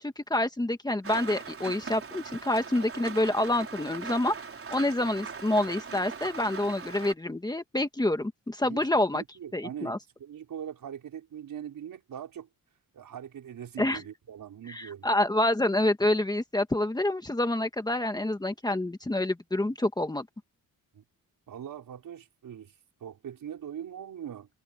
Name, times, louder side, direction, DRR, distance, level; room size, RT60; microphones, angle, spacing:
voice 1, 0.0-4.3 4.7-9.2 9.5-10.0 13.8-14.0 14.7-20.3, left 1 dB, 10° left, 1.7 m, -27 dB
Rain, 1.0-7.1, right 5 dB, 40° right, 4.4 m, -40 dB
voice 2, 9.1-12.5 12.9-15.1 20.9-21.0 21.5-22.7 23.0-24.5, right 9 dB, 70° right, 5.7 m, -41 dB
wide cardioid pair, 140°, 35 cm